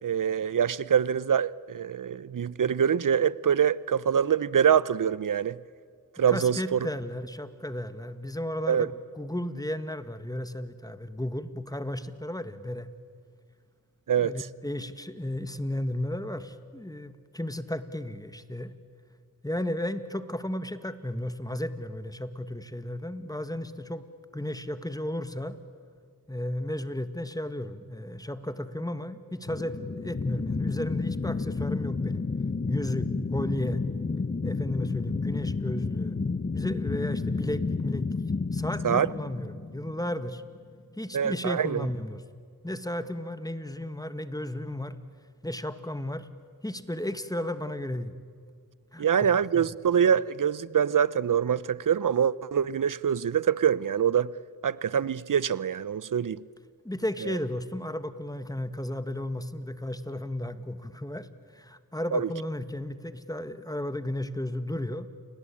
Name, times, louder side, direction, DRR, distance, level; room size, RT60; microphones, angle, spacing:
voice 1, 0.0-5.6 6.2-6.8 8.7-8.9 14.1-14.3 38.8-39.1 41.1-41.9 49.0-54.3 54.6-56.4 57.2-57.3 62.1-62.3, right 8 dB, 60° right, 0.8 m, -25 dB
voice 2, 6.3-12.9 14.2-18.7 19.4-24.0 24.3-25.6 26.3-32.2 32.7-33.8 34.4-36.2 36.5-38.1 38.5-40.4 41.0-42.2 42.6-45.0 45.4-46.3 46.6-48.1 48.9-49.7 56.8-65.1, left 1 dB, 10° left, 1.9 m, -34 dB
sound 1, 29.4-40.4, left 4 dB, 30° left, 1.1 m, -31 dB
29.0 x 21.0 x 8.7 m
cardioid pair, 45°, 36 cm